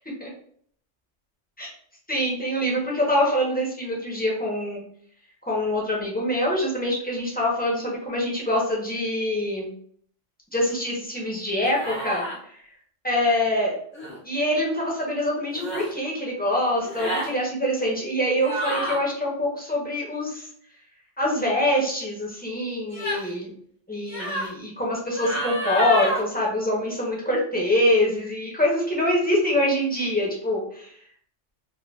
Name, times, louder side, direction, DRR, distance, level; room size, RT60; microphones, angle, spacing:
voice 1, 2.1-4.8 5.5-9.7 10.5-12.2 13.0-13.8 14.2-20.5 21.2-23.5 23.9-30.9, left 1 dB, 10° left, -4 dB, 0.6 m, -24 dB
sound 1, 11.7-12.4 13.9-14.2 15.5-15.9 16.8-17.3 18.4-19.0 22.9-23.3 24.1-24.5 25.1-26.2, equal, 85° left, 1.2 m, -29 dB
3.7 x 2.1 x 2.3 m, 0.62 s
omnidirectional pair, 1.3 m